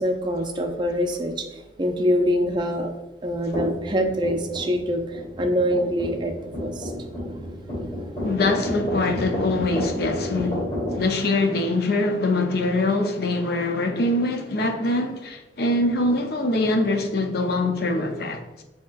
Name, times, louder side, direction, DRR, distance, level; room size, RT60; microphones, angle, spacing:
voice 1, 0.0-2.9 3.2-7.4 8.0-8.1, equal, 25° right, 0.4 m, -25 dB
sound 1, 3.5-11.0, left 1 dB, 30° left, 1.4 m, -31 dB
voice 2, 8.2-10.7 10.9-18.6, left 2 dB, 60° left, 0.6 m, -23 dB
6.9 x 2.9 x 2.4 m
head